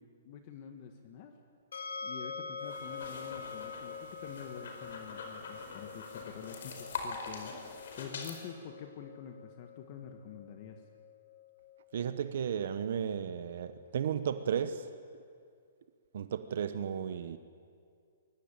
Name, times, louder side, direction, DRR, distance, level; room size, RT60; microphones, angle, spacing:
voice 1, 0.0-1.3 2.0-7.5 8.0-10.8, left 7 dB, 30° left, 1.6 m, -47 dB
sound 1, 1.7-14.7, left 5 dB, 80° left, 3.6 m, -47 dB
sound 2, 2.6-8.4, left 4 dB, 55° left, 4.9 m, -44 dB
voice 2, 11.9-14.9 16.1-17.4, right 8 dB, 55° right, 1.0 m, -34 dB
23.5 x 22.5 x 8.9 m
hypercardioid pair, 170°, 0 cm